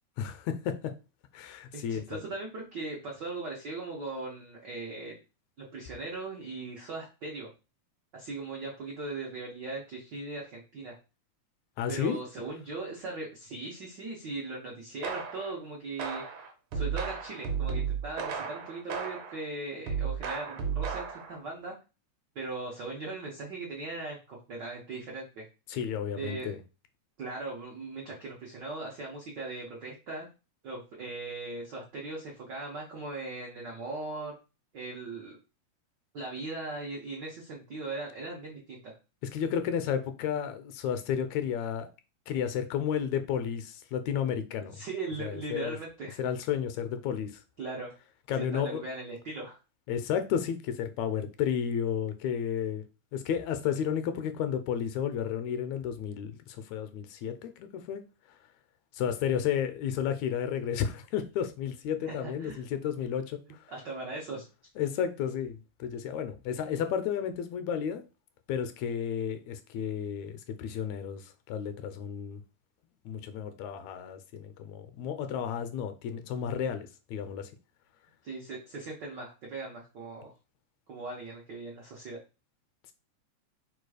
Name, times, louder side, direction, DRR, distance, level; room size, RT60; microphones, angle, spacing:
voice 1, 0.2-0.9 1.3-2.2 11.8-12.2 25.7-26.6 39.3-41.9 42.3-44.8 45.2-45.8 46.2-47.4 48.3-48.8 49.9-52.8 53.1-58.0 58.9-63.4 64.8-68.0 68.5-72.4 73.0-77.5, left 8 dB, 80° left, 1.7 m, -32 dB
voice 2, 1.7-5.2 5.6-7.5 8.1-11.0 11.9-16.2 16.7-21.7 22.3-25.4 26.1-26.5 27.2-30.3 30.6-34.4 34.7-35.4 36.1-39.0 44.7-46.2 47.6-47.9 48.4-49.6 62.0-62.6 63.7-64.4 78.2-80.3 80.9-82.2, right 3 dB, 85° right, 0.9 m, -39 dB
sound 1, 15.0-15.6 16.0-19.4 19.9-21.4, right 7 dB, 70° right, 1.3 m, -34 dB
4.5 x 2.3 x 4.8 m
omnidirectional pair, 3.3 m